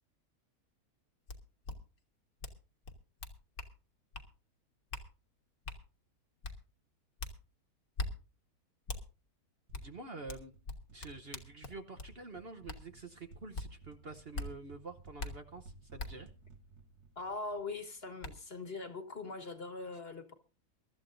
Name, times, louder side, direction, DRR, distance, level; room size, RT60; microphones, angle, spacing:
sound 1, 1.3-1.4 1.6-1.8 2.4-2.6 2.8-3.7 4.1-4.3 4.9-5.1 5.7-5.8 6.4-6.6 7.2-7.3 8.0-8.1 8.9-9.0 9.7-9.9 10.3-12.1 12.7-12.8 13.5-13.7 14.3-14.5 15.2-15.3 16.0-16.1 17.6-17.7 18.2-18.3, left 3 dB, 75° left, 2.2 m, -40 dB
voice 1, 9.7-10.6 10.9-16.3, right 3 dB, 45° right, 1.1 m, -48 dB
sound 2, 9.7-18.4, right 3 dB, 80° right, 1.8 m, -58 dB
voice 2, 17.1-20.3, left 3 dB, 40° left, 1.7 m, -41 dB
23.0 x 13.0 x 2.6 m
omnidirectional pair, 1.6 m